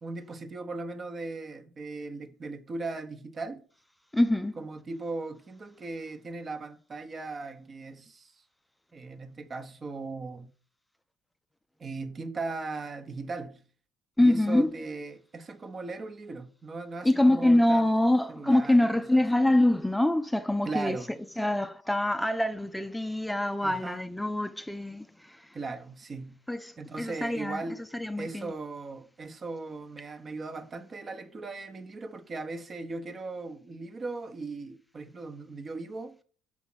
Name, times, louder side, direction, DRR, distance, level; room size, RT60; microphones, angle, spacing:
voice 1, 0.0-3.6 4.6-8.4 8.9-10.5 11.8-13.6 14.2-17.9 18.3-19.2 20.6-21.1 23.6-24.0 25.5-26.4 26.8-27.8 28.2-36.2, right 3 dB, 40° right, 1.0 m, -38 dB
voice 2, 4.1-4.6 14.2-14.7 17.0-21.0 21.4-25.6 26.5-27.6 27.9-28.5, left 1 dB, 5° left, 0.5 m, -25 dB
6.1 x 3.6 x 5.6 m
hypercardioid pair, 65°, 0 cm